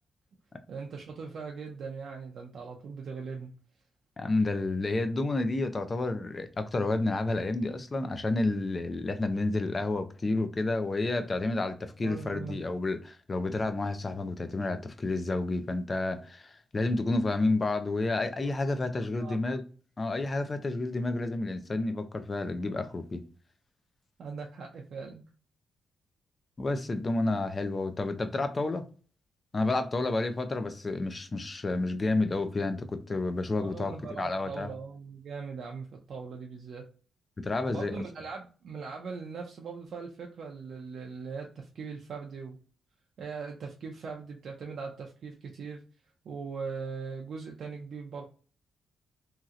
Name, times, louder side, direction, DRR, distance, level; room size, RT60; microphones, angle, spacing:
voice 1, 0.7-3.5 12.0-12.6 18.4-19.4 24.2-25.2 33.6-36.9 37.7-42.6 43.2-45.8 46.2-48.2, right 5 dB, 55° right, 0.4 m, -40 dB
voice 2, 4.2-19.6 20.0-23.2 26.6-28.8 29.5-34.7 37.4-37.9, left 2 dB, 25° left, 0.3 m, -30 dB
2.9 x 2.8 x 2.4 m
wide cardioid pair, 175°, 0 cm